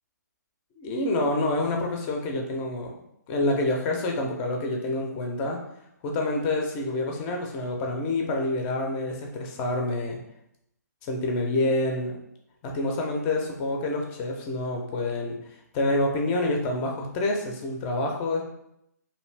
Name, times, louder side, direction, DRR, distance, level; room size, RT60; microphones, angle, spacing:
voice 1, 0.8-2.9 3.3-5.6 6.0-10.2 11.0-12.1 12.6-15.4 15.7-18.4, left 2 dB, 20° left, 1 dB, 0.4 m, -27 dB
2.6 x 2.5 x 3.2 m, 0.79 s
hypercardioid pair, 150°, 10 cm